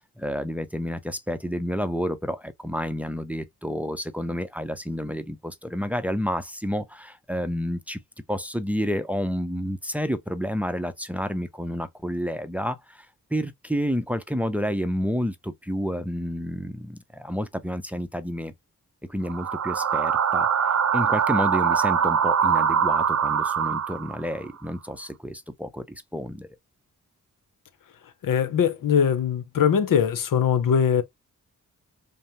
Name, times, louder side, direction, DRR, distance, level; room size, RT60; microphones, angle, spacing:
voice 1, 0.2-8.0 8.3-13.1 13.3-18.5 19.1-26.5, equal, 5° right, 0.6 m, -30 dB
sound 1, 19.3-24.3, right 7 dB, 55° right, 0.7 m, -23 dB
voice 2, 28.2-31.0, left 8 dB, 85° left, 0.8 m, -21 dB
5.4 x 2.0 x 2.9 m
cardioid pair, 70°, 32 cm